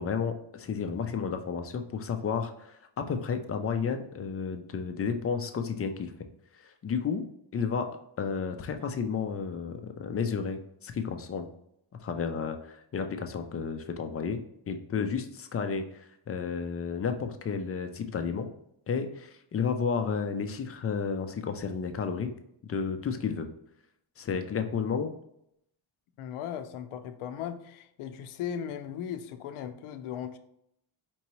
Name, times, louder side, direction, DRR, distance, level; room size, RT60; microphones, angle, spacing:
voice 1, 0.0-6.1 6.8-7.2 7.5-11.5 12.0-14.4 14.7-18.5 18.9-22.3 22.6-23.5 24.2-25.1, left 6 dB, 30° left, 7 dB, 0.4 m, -32 dB
voice 2, 26.2-30.4, left 9 dB, 80° left, 9 dB, 0.6 m, -37 dB
4.5 x 2.8 x 3.0 m, 0.75 s
cardioid pair, 110°, 49 cm